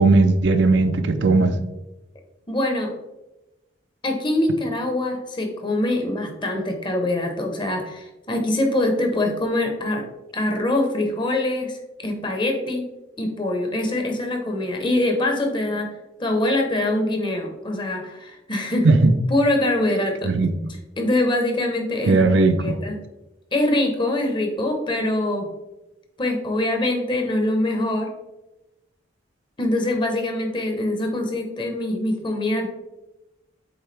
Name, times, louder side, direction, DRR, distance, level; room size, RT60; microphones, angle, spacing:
voice 1, 0.0-1.6 18.8-19.1 20.2-20.5 22.1-22.8, right 3 dB, 65° right, 8 dB, 0.5 m, -17 dB
voice 2, 2.5-2.9 4.0-10.0 10.3-12.9 13.2-15.9 16.2-18.9 19.3-20.3 21.0-23.0 23.5-25.5 26.2-28.1 29.6-32.7, left 1 dB, 25° left, 3 dB, 0.9 m, -24 dB
8.0 x 3.6 x 3.3 m, 1.0 s
head